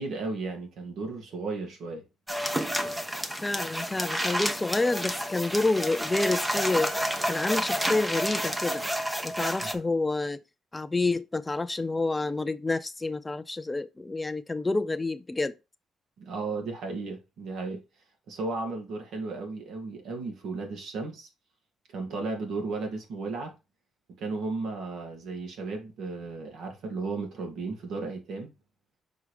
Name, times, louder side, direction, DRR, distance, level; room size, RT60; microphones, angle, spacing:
voice 1, 0.0-2.0 9.6-9.8 16.2-17.8 18.3-21.3 21.9-23.5 24.2-28.5, right 3 dB, 70° right, 2.5 m, -34 dB
sound 1, 2.3-9.7, equal, 10° right, 0.8 m, -30 dB
voice 2, 3.4-7.0 7.2-8.8 9.2-10.4 10.7-15.5, left 3 dB, 15° left, 0.4 m, -28 dB
6.1 x 4.7 x 3.3 m
cardioid pair, 140°, 0 cm